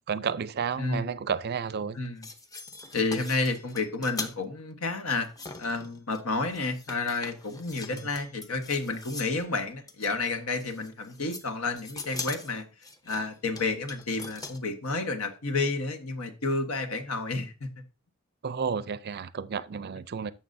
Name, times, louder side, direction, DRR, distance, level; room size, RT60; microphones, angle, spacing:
voice 1, 0.1-2.0 7.9-8.0 18.4-20.3, right 6 dB, 50° right, 0.4 m, -31 dB
voice 2, 0.8-1.1 1.9-2.3 2.9-5.3 5.6-12.6 13.0-17.7, left 3 dB, 85° left, 1.3 m, -30 dB
sound 1, 2.0-4.4 5.2-6.2 6.5-9.4 9.9-10.1 10.6-11.5 11.7-14.6, left 3 dB, 15° left, 0.8 m, -41 dB
11.5 x 7.2 x 2.6 m
head